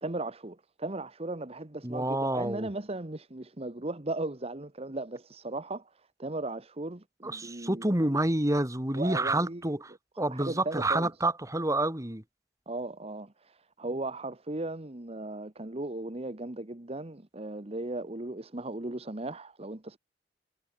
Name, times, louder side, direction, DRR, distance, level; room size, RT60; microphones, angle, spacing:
voice 1, 0.0-7.9 8.9-9.8 10.3-11.1 12.7-20.0, right 2 dB, 35° right, 1.3 m, -37 dB
voice 2, 1.8-2.7 7.2-9.9 10.2-12.2, right 1 dB, 20° right, 2.4 m, -28 dB
head